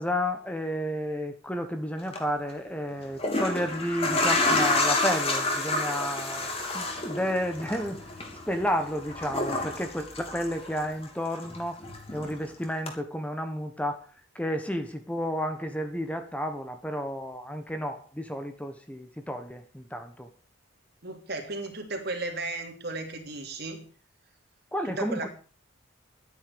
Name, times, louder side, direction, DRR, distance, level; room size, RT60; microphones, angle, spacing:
voice 1, 0.0-8.0 8.5-11.8 12.1-14.1 14.3-20.3 24.7-25.3, equal, 5° left, 7 dB, 1.2 m, -31 dB
sound 1, 2.0-2.2 3.0-11.1 11.4-12.4 12.9-13.0, left 2 dB, 30° left, 3.0 m, -29 dB
voice 2, 21.0-23.8 24.8-25.3, right 2 dB, 55° right, 4 dB, 3.2 m, -35 dB
12.0 x 9.7 x 7.0 m, 0.42 s
head